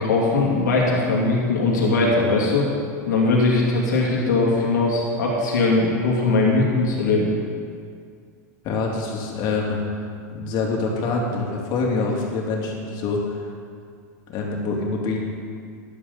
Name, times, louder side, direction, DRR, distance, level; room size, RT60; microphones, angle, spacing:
voice 1, 0.0-2.7 3.1-7.3, left 3 dB, 85° left, -3 dB, 2.6 m, -20 dB
voice 2, 8.6-13.5 14.3-15.2, left 3 dB, 50° left, -1 dB, 2.7 m, -26 dB
13.5 x 10.5 x 4.1 m, 2.2 s
hypercardioid pair, 105°, 10 cm